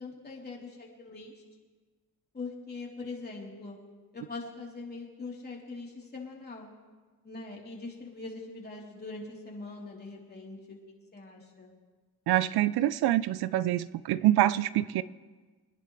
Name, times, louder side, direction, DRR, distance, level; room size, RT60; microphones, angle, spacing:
voice 1, 0.0-1.4 2.3-3.8 4.1-6.7 7.2-10.8 11.1-11.7, left 3 dB, 25° left, 3.6 m, -42 dB
voice 2, 12.3-15.0, right 14 dB, 70° right, 0.6 m, -25 dB
25.0 x 10.5 x 3.3 m
cardioid pair, 95°, 39 cm